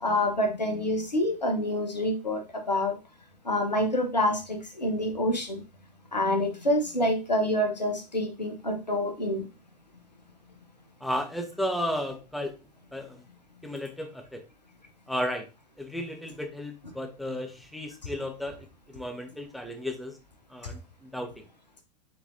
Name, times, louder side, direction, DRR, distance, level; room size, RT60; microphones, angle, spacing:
voice 1, 0.0-3.0 3.4-5.6 6.1-9.4, left 1 dB, 85° left, 3 dB, 1.0 m, -27 dB
voice 2, 11.0-12.5 12.9-13.2 13.6-14.4 15.1-15.5 15.8-18.6 18.9-20.2 20.5-21.3, equal, ahead, 3 dB, 0.7 m, -33 dB
4.3 x 3.9 x 2.6 m, 0.30 s
figure-of-eight pair, 90°, 21 cm